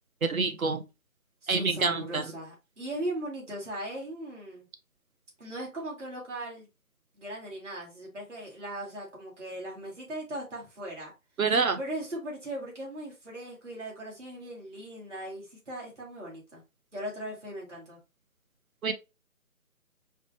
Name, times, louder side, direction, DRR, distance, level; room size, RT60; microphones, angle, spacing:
voice 1, 0.2-0.8 1.5-2.2 11.4-11.8 18.8-18.9, right 4 dB, 70° right, 0.8 m, -26 dB
voice 2, 1.4-4.7 5.4-6.7 7.1-11.1 11.8-16.6 16.9-18.0, right 1 dB, 55° right, 2.2 m, -38 dB
4.7 x 2.2 x 2.8 m
figure-of-eight pair, 155°, 43 cm